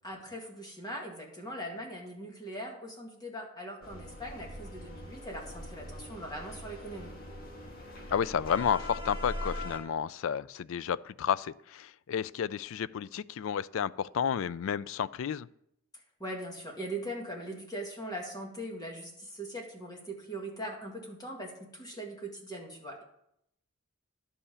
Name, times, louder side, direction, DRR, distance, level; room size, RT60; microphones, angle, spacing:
voice 1, 0.0-7.1 16.2-23.0, right 1 dB, 20° left, 0 dB, 1.9 m, -41 dB
sound 1, 3.8-9.8, left 1 dB, 40° left, 1.8 m, -41 dB
voice 2, 8.1-15.5, left 8 dB, 65° left, 19 dB, 0.3 m, -31 dB
11.0 x 5.6 x 6.9 m, 0.76 s
head